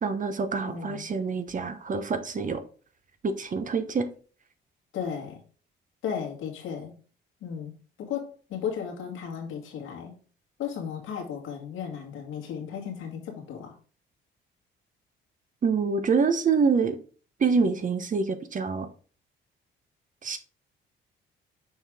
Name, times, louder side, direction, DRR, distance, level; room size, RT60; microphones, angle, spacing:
voice 1, 0.0-2.6 3.2-4.1 15.6-17.0 17.4-18.9 20.2-20.4, right 5 dB, 40° right, 1.0 m, -26 dB
voice 2, 0.6-1.1 4.9-5.4 6.0-7.0 7.4-10.1 10.6-13.7, left 7 dB, 85° left, 2.0 m, -35 dB
6.4 x 4.8 x 3.6 m
cardioid pair, 90°, 20 cm